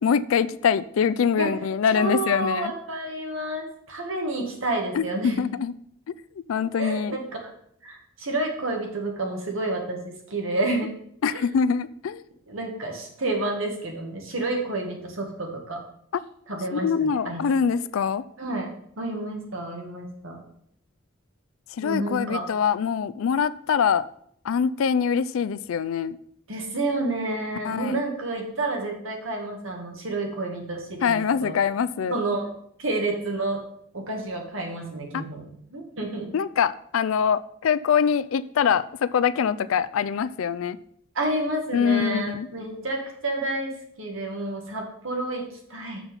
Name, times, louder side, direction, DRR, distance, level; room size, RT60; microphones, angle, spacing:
voice 1, 0.0-2.7 4.9-5.7 6.5-7.2 11.2-12.2 16.7-18.2 21.7-24.1 24.4-26.2 27.6-28.0 31.0-32.2 35.1-35.3 36.3-40.8 41.7-42.5, left 7 dB, 80° left, 16 dB, 0.4 m, -24 dB
voice 2, 1.9-5.4 6.8-7.2 7.8-10.9 11.3-11.4 12.5-15.8 16.5-17.4 18.4-18.7 19.0-20.4 21.8-22.5 26.5-31.6 32.1-32.5 32.8-33.6 33.9-36.3 41.2-46.0, right 2 dB, 80° right, 1 dB, 1.9 m, -29 dB
7.2 x 6.0 x 5.4 m, 0.69 s
head